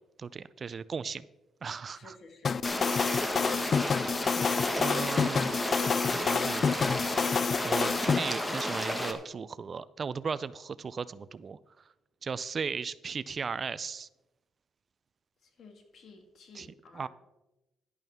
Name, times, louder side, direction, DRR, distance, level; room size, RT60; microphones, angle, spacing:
voice 1, 0.2-1.2 1.6-2.2 2.8-3.8 4.8-5.6 6.1-6.9 7.6-11.6 12.2-14.1 16.5-16.7 16.9-17.1, right 5 dB, 40° right, 17 dB, 0.4 m, -37 dB
voice 2, 1.9-2.6 15.6-17.1, left 3 dB, 60° left, 5 dB, 2.1 m, -53 dB
sound 1, 2.4-8.2, left 6 dB, 45° left, 0.3 m, -28 dB
sound 2, 2.6-9.1, left 1 dB, 15° left, 1.4 m, -33 dB
11.0 x 11.0 x 3.6 m, 1.0 s
cardioid pair, 90°, 0 cm